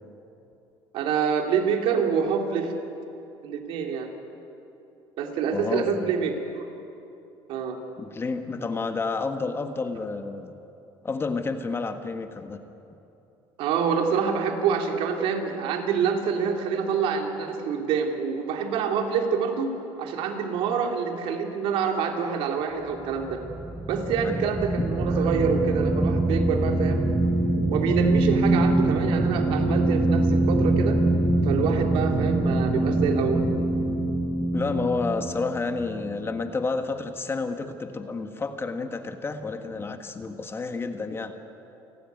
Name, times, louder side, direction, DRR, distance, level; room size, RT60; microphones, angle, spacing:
voice 1, 0.9-2.7 3.4-4.1 5.2-6.6 7.5-7.8 13.6-19.7 20.0-23.4 23.9-27.1 27.7-31.0 31.4-33.4, right 6 dB, 70° right, 3 dB, 3.0 m, -26 dB
voice 2, 5.5-6.1 8.0-10.5 11.0-12.6 24.2-24.9 34.5-41.3, left 4 dB, 25° left, 7 dB, 1.5 m, -30 dB
sound 1, 22.9-36.6, right 2 dB, 15° right, 1.6 m, -24 dB
29.0 x 12.5 x 9.4 m, 2.9 s
cardioid pair, 115°, 10 cm